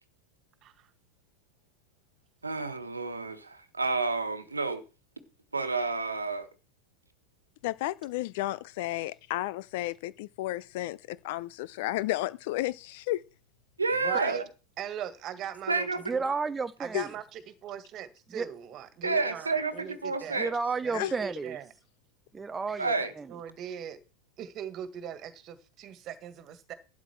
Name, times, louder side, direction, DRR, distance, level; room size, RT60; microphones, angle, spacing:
voice 1, 2.4-4.8 5.5-6.5 13.8-14.4 15.7-16.0 19.0-20.5 22.8-23.1, right 3 dB, 85° right, 1.4 m, -30 dB
voice 2, 7.6-13.2 16.9-17.0 20.9-21.1, left 16 dB, 55° left, 0.7 m, -32 dB
voice 3, 13.9-14.4 14.8-16.2 16.8-20.4 20.8-21.7 23.0-24.0 24.4-26.7, right 9 dB, 40° right, 1.9 m, -40 dB
voice 4, 16.1-17.0 18.3-18.5 20.4-21.6 22.3-23.3, right 4 dB, 15° right, 0.6 m, -31 dB
12.0 x 9.5 x 4.5 m
figure-of-eight pair, 85°, 0 cm